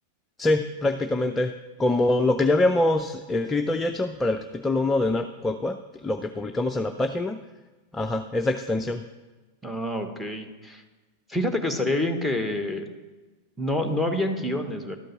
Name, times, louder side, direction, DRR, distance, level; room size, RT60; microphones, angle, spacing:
voice 1, 0.4-1.5 1.8-7.4 7.9-9.0, left 2 dB, 15° left, 6 dB, 0.4 m, -24 dB
voice 2, 9.6-10.8 11.3-12.9 13.6-15.0, left 1 dB, ahead, 5 dB, 1.1 m, -27 dB
12.5 x 5.3 x 5.7 m, 1.2 s
figure-of-eight pair, 90°, 0 cm